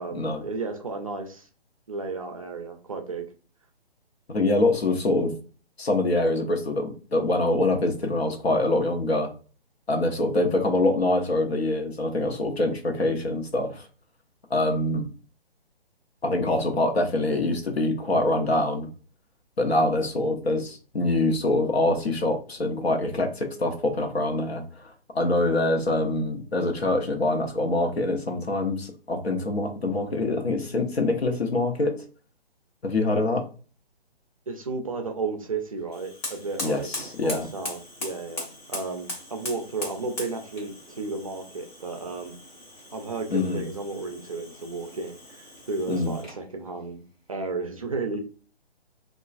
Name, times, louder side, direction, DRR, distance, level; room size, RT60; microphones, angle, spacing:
voice 1, 0.0-1.5 1.9-3.3 34.5-36.9 37.2-42.4 42.9-47.0 47.3-48.2, right 3 dB, 35° right, 4 dB, 0.4 m, -33 dB
voice 2, 4.3-5.3 5.8-9.3 9.9-13.8 14.5-15.1 16.2-18.9 19.6-24.6 25.1-32.0 32.8-33.4 36.6-37.5 43.3-43.6 45.9-46.1, left 2 dB, 75° left, 3 dB, 0.9 m, -24 dB
Fire, 35.9-46.5, left 1 dB, 15° left, 0.6 m, -40 dB
2.9 x 2.3 x 2.4 m, 0.37 s
figure-of-eight pair, 140°, 31 cm